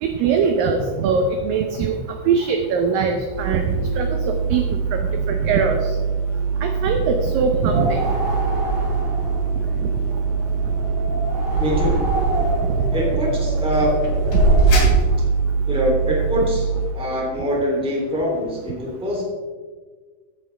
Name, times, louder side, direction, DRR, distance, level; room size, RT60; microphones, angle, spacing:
voice 1, 0.0-2.0 2.3-5.8 6.6-8.1 14.3-14.4, right 5 dB, 80° right, 5 dB, 2.0 m, -22 dB
sound 1, 3.3-16.9, right 5 dB, 70° left, 5.0 m, -23 dB
sound 2, 7.6-14.9, right 2 dB, 55° right, 4.8 m, -23 dB
voice 2, 11.6-12.0 12.9-14.0 15.7-16.6 16.9-19.2, equal, ahead, -3 dB, 1.9 m, -23 dB
16.0 x 9.1 x 3.4 m, 1.5 s
omnidirectional pair, 5.0 m